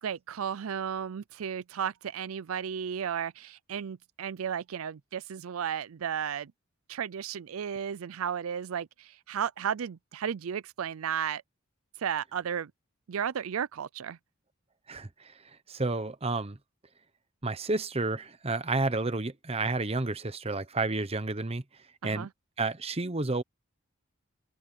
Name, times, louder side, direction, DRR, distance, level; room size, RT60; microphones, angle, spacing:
voice 1, 0.0-6.5 6.9-11.4 12.0-12.7 13.1-14.2 22.0-22.3, right 8 dB, 90° right, 0.4 m, -34 dB
voice 2, 14.9-15.3 15.7-16.6 17.4-21.6 22.0-22.3 22.6-23.4, right 3 dB, 30° right, 1.0 m, -30 dB
head